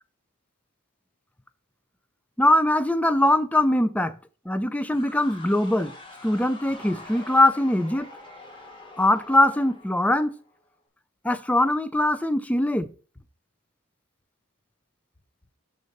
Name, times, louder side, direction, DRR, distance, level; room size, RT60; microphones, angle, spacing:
voice 1, 2.4-4.1 4.5-5.9 6.2-8.1 9.0-10.3 11.2-12.9, left 1 dB, 5° left, 0.4 m, -22 dB
sound 1, 4.9-10.7, left 2 dB, 25° left, 1.4 m, -45 dB
6.4 x 3.9 x 5.2 m
head